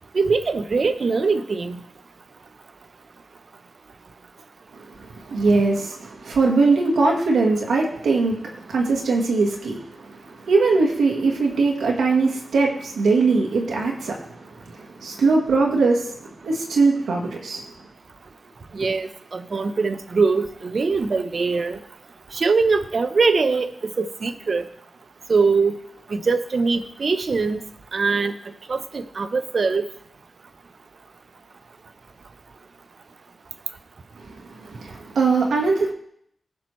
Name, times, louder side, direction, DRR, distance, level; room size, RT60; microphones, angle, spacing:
voice 1, 0.1-1.8 18.7-21.8 22.3-23.7 24.0-24.6 25.3-25.7 26.1-27.6 27.9-28.3 28.7-29.9, right 4 dB, 60° right, 10 dB, 0.8 m, -22 dB
voice 2, 4.7-17.6 34.2-35.9, right 3 dB, 90° right, 0 dB, 1.3 m, -21 dB
16.0 x 6.0 x 3.1 m, 0.70 s
cardioid pair, 50°, 0 cm